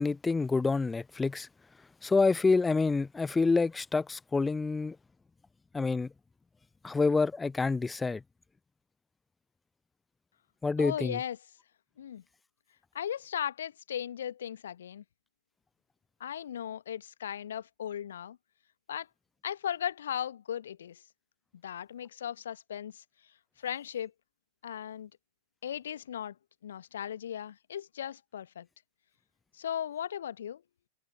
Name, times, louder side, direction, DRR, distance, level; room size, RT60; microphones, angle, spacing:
voice 1, 0.0-1.5 2.0-5.0 5.7-6.1 6.8-8.2 10.6-11.2, left 4 dB, 10° left, 0.3 m, -27 dB
voice 2, 10.8-11.4 12.0-12.2 12.9-15.0 16.2-18.4 18.9-19.1 19.4-21.0 21.6-23.0 23.6-24.1 24.6-25.1 25.6-26.4 26.6-28.7 29.5-30.6, left 9 dB, 65° left, 1.4 m, -37 dB
figure-of-eight pair, 90°, 0 cm